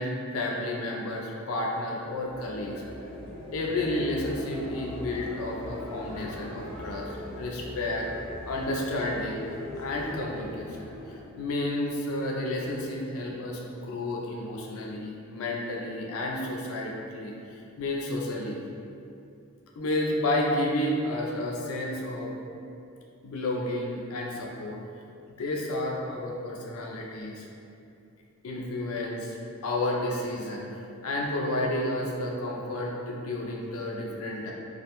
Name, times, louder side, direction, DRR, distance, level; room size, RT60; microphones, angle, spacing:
voice 1, 0.0-2.8 3.5-8.1 8.5-18.6 19.8-22.4 23.2-24.8 25.4-27.5 28.4-29.4 29.6-30.6 31.0-34.5, left 1 dB, 75° left, -2 dB, 0.4 m, -31 dB
sound 1, 2.0-11.4, equal, 5° left, 0.7 m, -40 dB
2.4 x 2.1 x 2.9 m, 2.6 s
head